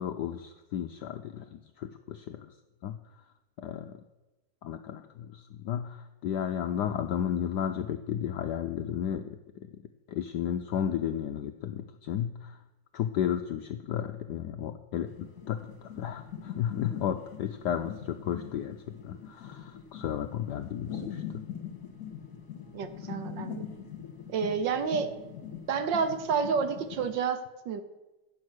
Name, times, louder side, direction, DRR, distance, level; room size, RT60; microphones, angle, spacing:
voice 1, 0.0-2.5 2.8-3.0 3.6-4.0 4.6-9.4 10.1-12.6 12.9-15.1 15.5-18.8 19.0-21.2, left 9 dB, 80° left, 8 dB, 0.9 m, -33 dB
sound 1, 15.1-27.2, left 8 dB, 50° left, 1.7 m, -42 dB
voice 2, 22.7-23.7 24.3-25.1 25.7-27.8, right 6 dB, 65° right, 10 dB, 1.4 m, -29 dB
16.0 x 6.4 x 6.2 m, 1.1 s
omnidirectional pair, 2.4 m